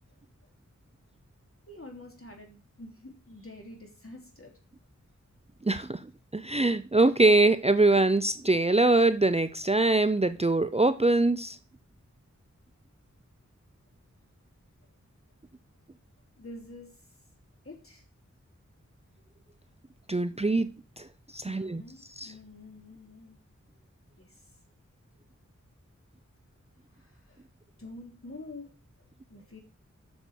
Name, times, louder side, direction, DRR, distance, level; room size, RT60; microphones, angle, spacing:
voice 1, 1.7-4.5 6.4-6.5 16.4-16.9 17.6-18.0 21.4-23.4 24.2-24.5 26.9-27.4 27.8-28.7 29.3-29.6, left 2 dB, 45° left, 3.4 m, -47 dB
voice 2, 5.6-6.0 6.3-11.6 20.1-20.7 21.0-21.1 21.3-21.8 22.2-22.3, right 2 dB, 20° right, 0.6 m, -23 dB
8.0 x 6.6 x 6.3 m
wide cardioid pair, 50°, 30 cm